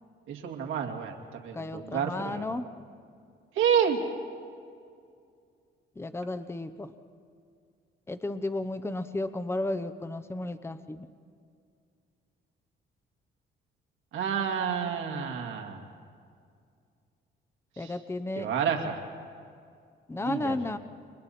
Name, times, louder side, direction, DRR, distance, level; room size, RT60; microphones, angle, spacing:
voice 1, 0.3-2.5 3.5-4.0 14.1-15.9 17.8-18.0 18.4-19.0 20.3-20.6, right 7 dB, 85° right, 2 dB, 2.4 m, -29 dB
voice 2, 1.5-2.6 6.0-6.9 8.1-11.1 17.8-18.5 20.1-20.8, left 2 dB, 10° left, 10 dB, 0.9 m, -33 dB
29.5 x 23.5 x 4.3 m, 2.3 s
cardioid pair, 90°, 20 cm